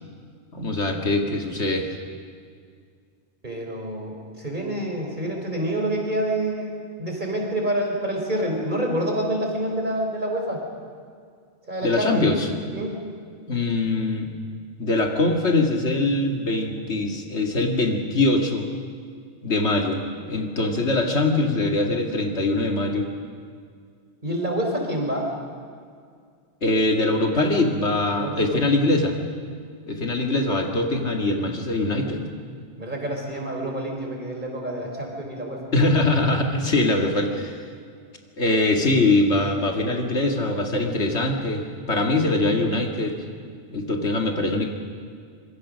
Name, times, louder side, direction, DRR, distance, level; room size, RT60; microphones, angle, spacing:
voice 1, 0.5-1.9 11.8-12.5 13.5-14.3 14.8-18.7 19.4-23.1 26.6-29.2 29.9-32.2 35.7-37.6 38.4-43.2 43.7-44.7, left 2 dB, 70° left, 3 dB, 2.4 m, -22 dB
voice 2, 3.4-6.7 7.0-10.6 11.7-12.3 12.7-13.1 24.2-25.3 28.1-28.7 32.8-35.6, right 1 dB, 40° right, 1 dB, 4.1 m, -27 dB
25.0 x 22.0 x 6.3 m, 2.1 s
omnidirectional pair, 1.2 m